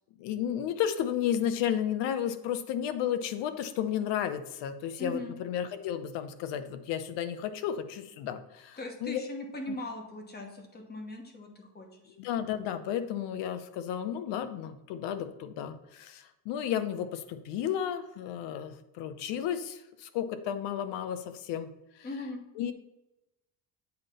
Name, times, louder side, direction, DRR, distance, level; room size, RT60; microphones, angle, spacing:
voice 1, 0.2-9.2 9.7-9.8 12.2-21.7 22.6-22.7, left 9 dB, 85° left, 10 dB, 0.8 m, -33 dB
voice 2, 5.0-5.3 8.8-12.1 22.0-22.4, left 1 dB, 25° left, 3 dB, 1.1 m, -40 dB
8.1 x 3.5 x 5.4 m, 0.96 s
cardioid pair, 170°, 41 cm